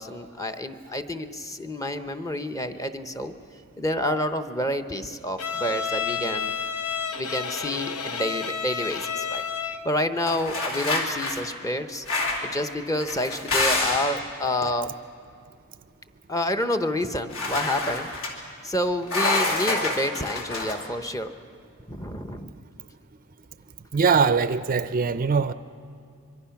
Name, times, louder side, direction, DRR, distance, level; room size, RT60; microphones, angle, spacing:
voice 1, 0.0-3.3 3.8-6.5 7.2-9.4 9.8-12.0 12.4-14.9 16.3-18.1 18.6-21.3 21.9-22.5, left 1 dB, 15° left, 0.8 m, -28 dB
Bowed string instrument, 5.4-9.9, left 6 dB, 85° left, 0.9 m, -30 dB
sound 1, 10.2-11.4 12.1-12.5 13.0-14.2 17.3-18.3 19.1-20.7, left 2 dB, 65° left, 3.0 m, -27 dB
voice 2, 23.9-25.5, right 5 dB, 40° right, 0.5 m, -21 dB
24.5 x 23.5 x 5.9 m
head